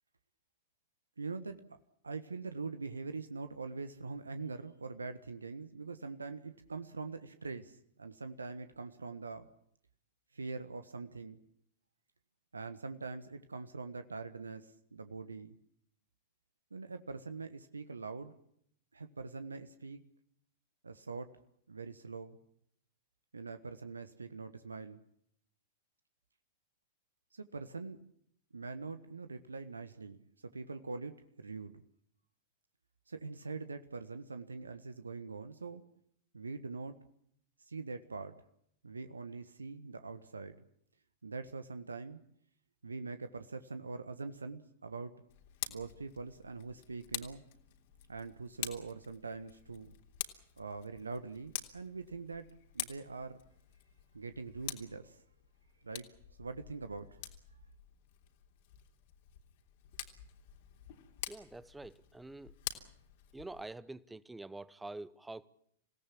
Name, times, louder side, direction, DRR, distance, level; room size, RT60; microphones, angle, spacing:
voice 1, 1.2-1.6 2.0-9.5 10.3-11.4 12.5-15.5 16.7-18.3 18.9-20.0 20.8-21.4 21.7-22.4 23.3-25.0 27.3-28.0 28.5-30.2 30.5-31.8 33.1-35.8 36.3-37.0 37.7-38.4 38.8-40.5 41.2-42.2 42.8-45.2 45.7-47.4 48.1-49.9 50.6-53.4 54.1-55.2 55.8-56.1 56.4-57.2, right 4 dB, 80° right, 1.4 m, -43 dB
Tick, 45.3-63.7, left 13 dB, 55° left, 3.2 m, -47 dB
voice 2, 61.3-62.6 63.3-65.5, right 2 dB, 5° right, 1.1 m, -46 dB
27.5 x 18.0 x 8.6 m
figure-of-eight pair, 100°, 0 cm